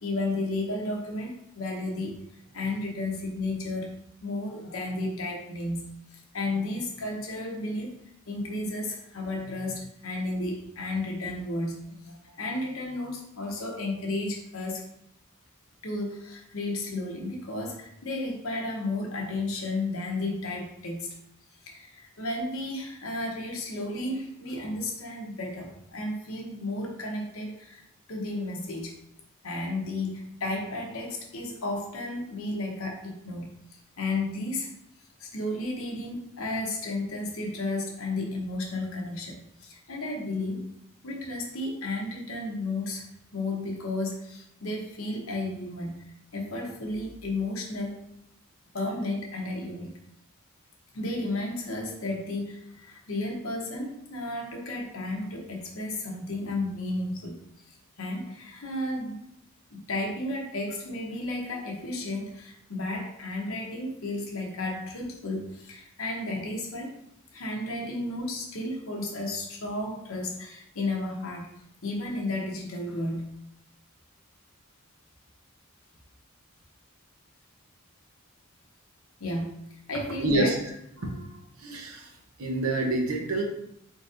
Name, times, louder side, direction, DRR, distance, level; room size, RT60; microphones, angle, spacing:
voice 1, 0.0-2.2 2.5-5.8 6.1-7.9 8.3-14.9 15.8-21.1 21.7-27.8 28.1-29.0 29.4-33.5 34.0-34.7 35.2-39.3 39.6-46.0 46.3-48.0 48.7-49.9 50.9-57.4 57.7-59.2 59.7-66.9 67.3-71.5 71.8-73.3 79.2-80.5, left 2 dB, 70° left, 0 dB, 1.0 m, -33 dB
voice 2, 80.2-80.5 81.0-81.3 81.6-82.1 82.4-83.4, right 2 dB, 75° right, 2 dB, 0.9 m, -27 dB
4.5 x 4.0 x 2.6 m, 0.76 s
head